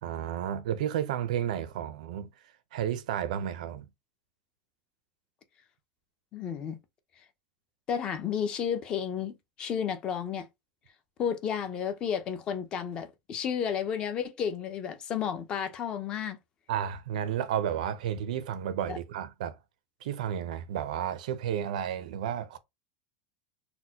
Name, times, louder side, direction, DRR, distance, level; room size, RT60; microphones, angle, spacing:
voice 1, 0.0-2.3 2.7-3.9 16.7-19.6 20.0-22.6, right 9 dB, 85° right, 0.5 m, -32 dB
voice 2, 6.3-6.8 7.9-10.5 11.2-16.4 18.9-19.0, left 8 dB, 20° left, 0.4 m, -32 dB
4.2 x 2.1 x 2.7 m
supercardioid pair, 180°, 4 cm